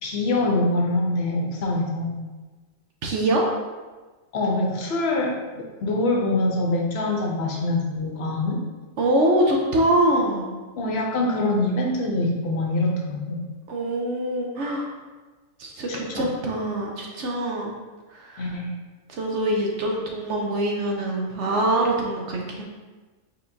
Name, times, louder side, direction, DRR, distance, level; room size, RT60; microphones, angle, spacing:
voice 1, 0.0-2.2 4.3-8.6 10.8-13.4 15.9-16.3 18.4-18.7, left 2 dB, 60° left, 0 dB, 0.8 m, -24 dB
voice 2, 3.0-3.4 9.0-10.5 13.7-14.9 15.6-17.8 18.1-18.5 19.1-22.6, right 1 dB, 65° right, 0 dB, 0.9 m, -24 dB
4.3 x 3.8 x 2.6 m, 1.3 s
omnidirectional pair, 1.4 m